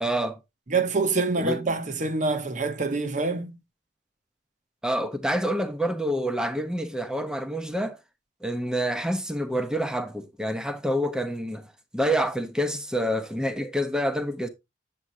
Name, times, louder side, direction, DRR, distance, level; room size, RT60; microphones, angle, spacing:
voice 1, 0.0-0.4 1.4-1.6 4.8-8.0 8.4-11.7 11.9-14.5, equal, 5° right, 0.9 m, -27 dB
voice 2, 0.7-3.6, right 3 dB, 40° right, 0.9 m, -26 dB
7.7 x 7.6 x 2.7 m
head